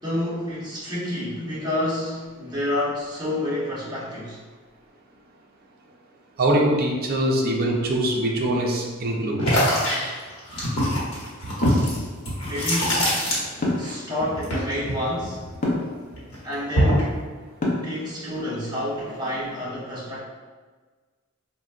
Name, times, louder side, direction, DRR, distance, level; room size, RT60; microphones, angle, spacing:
voice 1, 0.0-4.4 12.4-13.1 13.8-15.4 16.4-17.2 17.8-20.2, left 1 dB, 20° right, -9 dB, 1.0 m, -29 dB
voice 2, 6.4-9.5, right 1 dB, 45° right, -1 dB, 0.5 m, -23 dB
sound 1, 9.4-13.9 14.2-15.8 16.1-17.1, equal, 75° left, 1.0 m, -23 dB
sound 2, 11.6-11.9 13.6-14.0 15.6-15.9 17.6-18.0, left 1 dB, 35° left, 0.5 m, -24 dB
3.9 x 2.2 x 2.4 m, 1.4 s
head